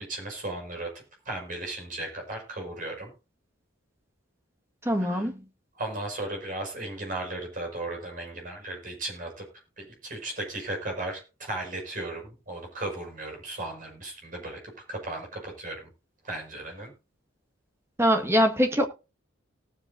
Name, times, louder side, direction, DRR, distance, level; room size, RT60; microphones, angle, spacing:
voice 1, 0.1-0.9 1.3-3.1 5.0-5.3 5.8-9.4 9.8-14.6 14.9-15.9 16.2-16.9, right 2 dB, 40° right, 5.9 m, -36 dB
voice 2, 4.8-5.4 18.0-18.9, equal, 15° right, 1.7 m, -23 dB
19.0 x 7.8 x 2.7 m
head